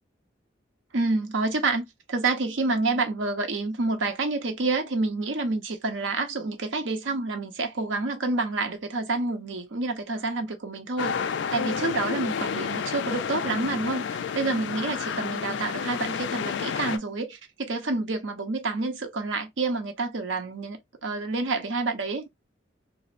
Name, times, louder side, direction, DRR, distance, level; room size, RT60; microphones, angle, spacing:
voice 1, 0.9-22.3, right 3 dB, 90° right, 0.7 m, -28 dB
sound 1, 11.0-17.0, left 7 dB, 65° left, 0.3 m, -30 dB
3.1 x 2.0 x 2.4 m
head